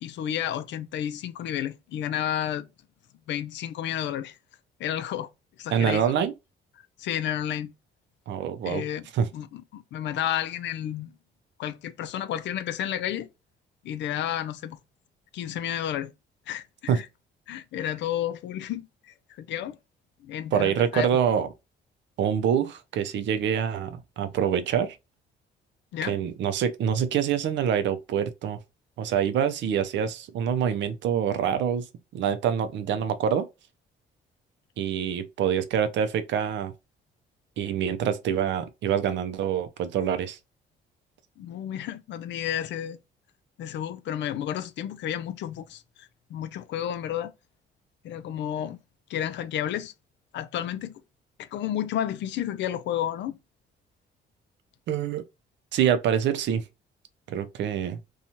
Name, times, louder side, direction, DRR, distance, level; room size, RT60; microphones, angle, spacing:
voice 1, 0.0-2.7 3.3-4.4 4.8-5.3 5.6-6.0 7.0-7.7 8.6-9.1 9.3-11.1 11.6-13.3 13.8-14.8 15.3-16.1 16.5-17.1 17.5-19.8 20.2-21.1 25.9-26.2 41.4-43.0 43.6-47.3 48.0-48.8 49.1-49.9 50.3-50.9 51.4-53.4, left 10 dB, 70° left, 0.4 m, -31 dB
voice 2, 5.7-6.3 8.3-8.8 9.1-9.3 16.9-17.0 20.5-21.5 22.2-25.0 26.1-28.6 29.0-31.9 32.1-33.5 34.8-36.7 37.6-40.4 54.9-55.2 55.7-56.6 57.3-58.0, right 8 dB, 70° right, 0.5 m, -25 dB
2.7 x 2.3 x 2.9 m
cardioid pair, 105°, 20 cm